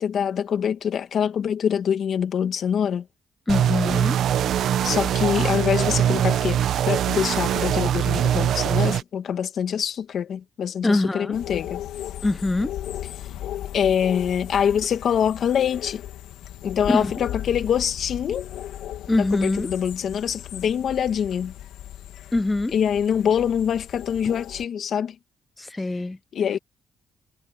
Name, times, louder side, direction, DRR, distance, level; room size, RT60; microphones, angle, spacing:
voice 1, 0.0-3.1 4.8-11.8 13.7-16.0 16.6-18.5 19.2-21.5 22.7-25.2 26.3-26.6, left 8 dB, 60° left, 2.4 m, -24 dB
voice 2, 3.5-4.2 10.8-11.3 12.2-12.7 16.9-17.1 19.1-19.7 22.3-22.7 25.6-26.2, left 2 dB, 15° left, 0.7 m, -23 dB
sound 1, 3.5-9.0, right 10 dB, 75° right, 1.2 m, -22 dB
sound 2, 11.3-24.6, left 12 dB, 85° left, 2.6 m, -36 dB
cardioid pair, 90°, 0 cm